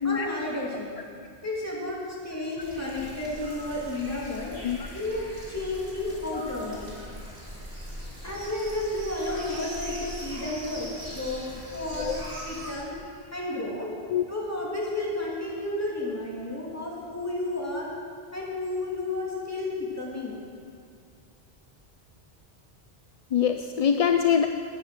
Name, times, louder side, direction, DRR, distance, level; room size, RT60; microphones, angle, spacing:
voice 1, 0.0-0.9 1.4-4.5 4.9-7.2 8.2-13.9 14.3-17.9 18.3-20.4, left 2 dB, 15° left, -5 dB, 2.8 m, -32 dB
sound 1, 2.6-12.8, equal, 60° right, 3.7 m, -41 dB
voice 2, 23.3-24.5, left 8 dB, 50° left, 6 dB, 0.5 m, -23 dB
12.0 x 9.8 x 6.8 m, 2.3 s
omnidirectional pair, 1.0 m